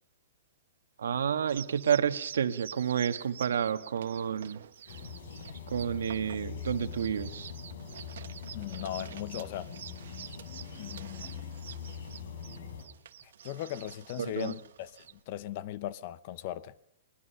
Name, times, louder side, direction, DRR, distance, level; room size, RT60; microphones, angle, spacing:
voice 1, 1.0-4.6 5.7-7.5 14.2-14.6, right 8 dB, 90° right, 1.4 m, -30 dB
sound 1, 1.5-15.2, right 9 dB, 70° right, 1.0 m, -49 dB
sound 2, 4.9-12.9, left 7 dB, 70° left, 4.9 m, -43 dB
voice 2, 8.5-9.7 10.8-11.4 13.2-16.7, left 13 dB, 40° left, 0.7 m, -38 dB
21.5 x 21.0 x 5.8 m
hypercardioid pair, 165°, 0 cm